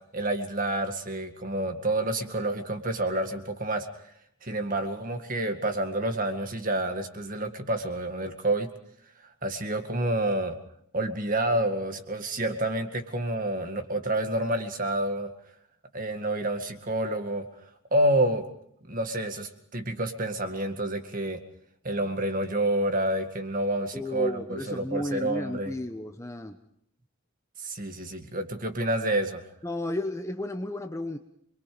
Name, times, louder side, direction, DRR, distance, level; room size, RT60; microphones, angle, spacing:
voice 1, 0.1-3.9 4.4-8.7 9.4-10.6 10.9-15.3 15.9-17.5 17.9-18.5 18.9-21.4 21.8-25.7 27.6-29.4, right 1 dB, 35° right, 6 dB, 2.0 m, -28 dB
voice 2, 23.9-26.6 29.6-31.2, left 1 dB, 15° left, 6 dB, 1.0 m, -33 dB
27.5 x 23.0 x 5.2 m, 0.68 s
head